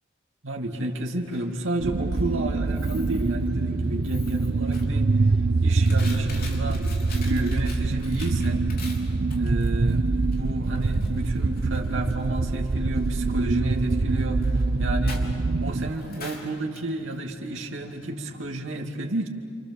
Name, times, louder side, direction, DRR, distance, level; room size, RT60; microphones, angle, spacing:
voice 1, 0.4-5.1 5.6-6.8 7.2-8.6 9.4-15.2 15.6-19.3, right 1 dB, 90° right, 1 dB, 2.5 m, -31 dB
Coin (dropping), 0.9-18.7, left 2 dB, 50° left, 3.6 m, -46 dB
sound 1, 1.8-15.9, right 3 dB, 55° right, 0.6 m, -25 dB
28.5 x 27.5 x 7.1 m, 2.3 s
head